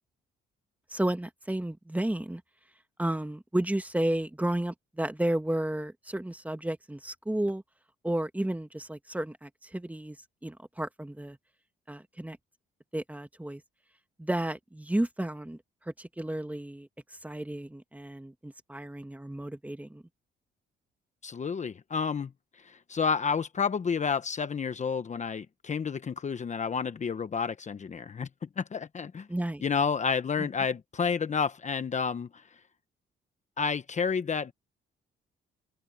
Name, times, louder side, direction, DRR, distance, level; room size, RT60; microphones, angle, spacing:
voice 1, 0.9-2.4 3.0-7.6 8.0-10.2 10.4-11.4 11.9-12.4 12.9-13.6 14.2-15.6 15.9-16.9 17.2-20.0 29.3-29.6 30.4-30.5, right 1 dB, 5° right, 2.0 m, -32 dB
voice 2, 21.2-22.3 22.6-29.3 29.6-32.4 33.6-34.5, left 6 dB, 35° left, 1.0 m, -30 dB
open air
cardioid pair, 90°, 20 cm